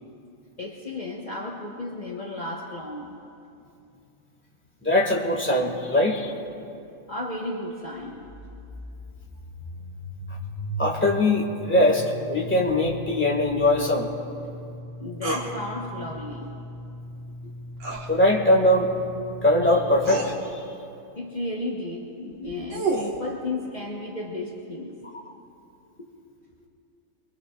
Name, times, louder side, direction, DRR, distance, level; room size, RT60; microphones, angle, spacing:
voice 1, 0.6-3.2 7.1-8.3 15.0-16.5 17.4-17.5 21.1-25.0 26.0-26.1, left 2 dB, 35° left, -4 dB, 1.4 m, -34 dB
voice 2, 4.8-6.3 10.8-14.1 18.1-18.9 19.4-20.6, left 1 dB, 10° left, -1 dB, 1.9 m, -21 dB
sound 1, 8.0-20.0, equal, 80° left, 2.5 m, -39 dB
sound 2, 15.2-15.5 17.8-18.1 19.4-19.5 20.0-20.3 22.3-23.2, right 3 dB, 70° right, 1.9 m, -28 dB
25.5 x 23.0 x 2.4 m, 2.6 s
omnidirectional pair, 1.3 m